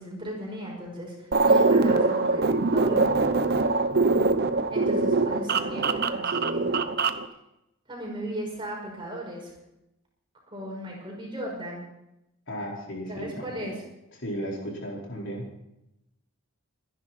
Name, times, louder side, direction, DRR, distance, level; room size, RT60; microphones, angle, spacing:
voice 1, 0.0-3.8 4.7-6.7 7.9-9.5 10.5-11.8 13.1-13.8, equal, 25° right, -1 dB, 5.8 m, -36 dB
sound 1, 1.3-7.3, right 3 dB, 45° right, 0.9 m, -23 dB
voice 2, 12.5-13.7 14.2-15.5, equal, 55° left, -2 dB, 4.5 m, -35 dB
26.0 x 10.5 x 4.3 m, 0.87 s
head